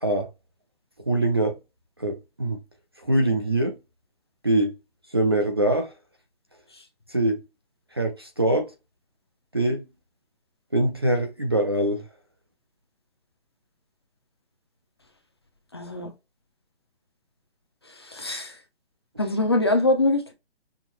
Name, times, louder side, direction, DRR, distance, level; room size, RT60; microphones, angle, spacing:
voice 1, 1.1-1.6 2.0-2.6 3.0-3.7 4.4-4.7 5.1-5.9 7.1-7.4 7.9-8.7 9.5-9.8 10.7-12.0, right 1 dB, 25° right, 0.5 m, -23 dB
voice 2, 15.7-16.1 17.9-18.6 19.2-20.3, left 2 dB, 25° left, 0.6 m, -23 dB
5.7 x 2.9 x 3.1 m
hypercardioid pair, 170°, 33 cm